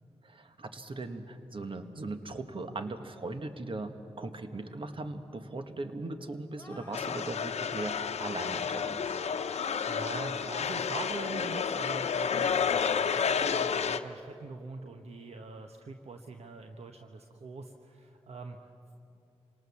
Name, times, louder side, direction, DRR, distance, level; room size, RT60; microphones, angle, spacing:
voice 1, 0.2-9.2, right 2 dB, 50° right, 8 dB, 1.6 m, -39 dB
sound 1, 6.5-7.5 8.2-8.7 9.2-10.8 11.2-11.5 11.9-12.3 12.7-13.0, left 2 dB, 15° left, 3.2 m, -53 dB
sound 2, 6.9-14.0, left 6 dB, 75° left, 0.8 m, -30 dB
voice 2, 9.9-18.7, right 4 dB, 70° right, 5 dB, 1.1 m, -43 dB
26.5 x 19.0 x 7.2 m, 2.6 s
cardioid pair, 50°, 11 cm